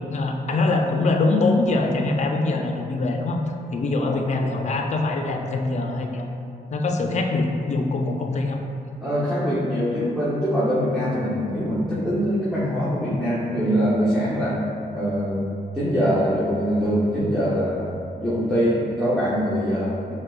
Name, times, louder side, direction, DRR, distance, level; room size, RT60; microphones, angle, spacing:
voice 1, 0.0-3.4 3.7-6.3 6.7-8.6, left 2 dB, 45° left, 3 dB, 0.4 m, -23 dB
voice 2, 9.0-14.6 14.9-15.4 15.7-20.1, equal, ahead, -11 dB, 0.7 m, -23 dB
4.6 x 2.1 x 2.3 m, 2.5 s
cardioid pair, 65°, 17 cm